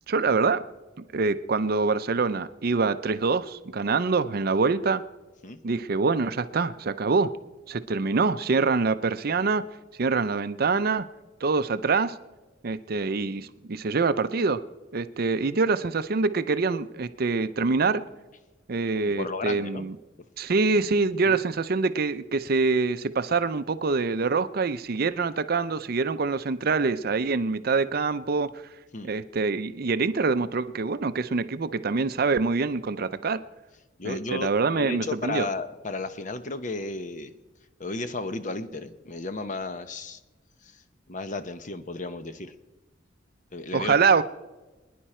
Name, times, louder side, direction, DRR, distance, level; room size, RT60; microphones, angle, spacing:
voice 1, 0.1-0.7 1.1-5.0 5.6-7.3 7.7-9.6 10.0-11.1 11.4-12.1 12.6-14.6 14.9-18.0 18.7-19.9 20.4-28.5 29.0-33.4 34.0-35.5 43.7-44.2, right 4 dB, 55° right, 13 dB, 0.6 m, -25 dB
voice 2, 18.9-19.9 20.4-20.5 20.8-21.0 21.2-21.4 28.9-29.1 34.0-37.3 37.8-40.2 40.6-40.8 41.1-42.5 43.5-44.0, left 3 dB, 40° left, 11 dB, 0.8 m, -34 dB
24.5 x 10.0 x 4.4 m, 1.1 s
head